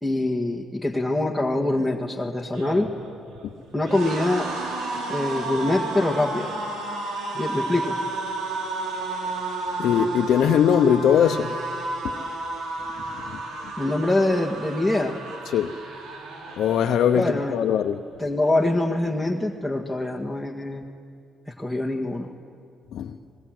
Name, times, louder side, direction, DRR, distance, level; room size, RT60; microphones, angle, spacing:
voice 1, 0.0-2.9 3.7-4.5 5.1-6.5 7.3-8.0 13.8-15.2 17.1-17.6 18.2-20.8 21.5-22.3, left 2 dB, ahead, 1.8 m, -24 dB
sound 1, 2.4-17.6 17.9-18.2 18.4-19.2, right 2 dB, 85° right, 4.7 m, -32 dB
voice 2, 9.8-11.5 12.0-12.2 13.1-13.4 15.5-15.7 16.6-17.3 17.5-18.0 22.9-23.1, left 8 dB, 75° left, 0.9 m, -20 dB
25.0 x 20.5 x 7.9 m
cardioid pair, 90°, 0 cm